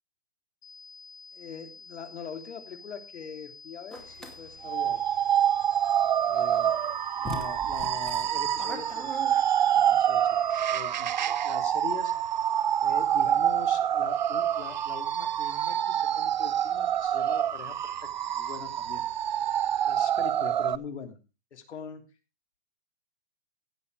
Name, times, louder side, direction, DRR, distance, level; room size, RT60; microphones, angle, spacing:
sound 1, 0.6-10.6, left 4 dB, 65° left, 4.1 m, -49 dB
voice 1, 1.3-5.2 6.2-6.7 7.2-9.2 9.6-12.1 12.8-19.0 19.9-21.2 21.5-22.0, left 7 dB, 85° left, 6 dB, 3.2 m, -42 dB
sound 2, 3.9-4.3 6.6-6.7 7.2-9.8, equal, ahead, 0.9 m, -40 dB
sound 3, 4.6-20.8, right 10 dB, 45° right, 0.5 m, -26 dB
16.0 x 7.5 x 4.8 m, 0.32 s
hypercardioid pair, 175°, 33 cm